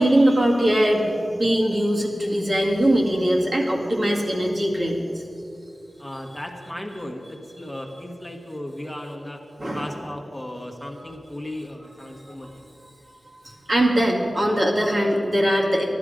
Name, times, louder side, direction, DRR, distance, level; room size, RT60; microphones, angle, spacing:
voice 1, 0.0-5.2 9.6-9.9 12.3-12.5 13.3-15.9, right 1 dB, 45° right, -2 dB, 2.0 m, -21 dB
voice 2, 6.0-9.4 9.7-12.7, left 1 dB, 10° left, 1 dB, 1.4 m, -36 dB
13.5 x 11.0 x 5.1 m, 2.8 s
cardioid pair, 55°, 0 cm